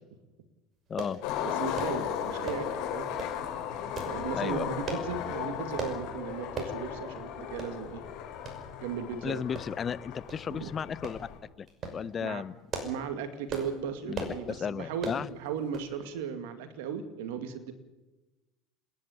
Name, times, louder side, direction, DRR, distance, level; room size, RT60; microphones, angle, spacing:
sound 1, 1.0-1.2 1.7-2.0 2.4-2.7 3.2-3.4 3.9-4.2 4.8-5.1 5.8-6.0 6.5-6.8 7.1-7.2 7.6-7.7 8.4-8.6 9.5-9.9 10.3-10.4 11.0-11.2 11.7-12.0 12.5-13.0 13.5-13.7 14.1-14.4 15.0-15.2 15.7-15.9 16.2-16.3, right 4 dB, 40° right, 6.0 m, -37 dB
Skateboard, 1.2-11.4, left 9 dB, 65° left, 6.1 m, -36 dB
voice 1, 1.4-3.1 4.0-8.0 8.8-9.4 10.5-10.7 12.2-12.4 12.8-17.7, right 7 dB, 80° right, 9 dB, 2.3 m, -36 dB
voice 2, 4.3-4.6 9.2-11.2 11.6-11.7 11.9-12.5 14.1-15.3, left 7 dB, 30° left, 19 dB, 0.7 m, -34 dB
27.0 x 11.0 x 9.9 m, 1.1 s
supercardioid pair, 100°, 0 cm